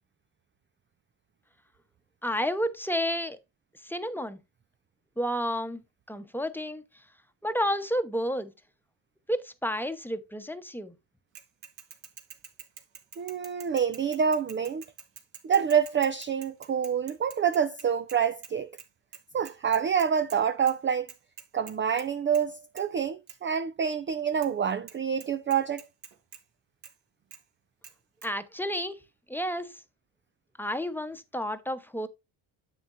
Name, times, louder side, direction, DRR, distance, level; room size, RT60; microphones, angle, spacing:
voice 1, 2.2-3.4 3.8-4.4 5.2-5.8 6.1-6.8 7.4-8.5 9.3-10.9 28.2-29.0 29.3-29.8 30.6-32.1, equal, 5° left, 0.9 m, -31 dB
Bicycle / Mechanisms, 11.4-18.5 18.8-18.9 19.1-20.4 20.7-20.8 21.1-22.1 22.3-22.5 22.8-22.9 23.3-23.4 24.4-24.5 24.9-25.0 25.2-26.4 26.8-26.9 27.3-27.4 27.8-27.9 28.2-28.3, right 8 dB, 60° right, 1.6 m, -47 dB
voice 2, 13.2-14.8 15.4-18.7 19.3-21.1 21.5-25.8, right 7 dB, 25° right, 0.4 m, -27 dB
9.5 x 6.9 x 2.6 m
supercardioid pair, 60°, 50 cm